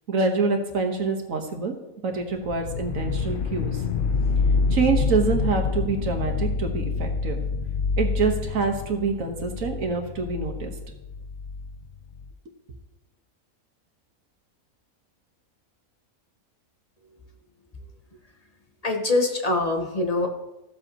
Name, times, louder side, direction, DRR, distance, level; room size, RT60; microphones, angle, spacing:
voice 1, 0.1-1.7 2.0-3.8 4.7-7.4 8.0-10.7, right 4 dB, 65° right, 3 dB, 1.6 m, -26 dB
sound 1, 2.4-12.3, left 4 dB, 85° left, 0.4 m, -27 dB
voice 2, 18.8-20.3, left 2 dB, 30° left, 3 dB, 1.0 m, -23 dB
14.5 x 7.7 x 2.9 m, 0.97 s
omnidirectional pair, 1.6 m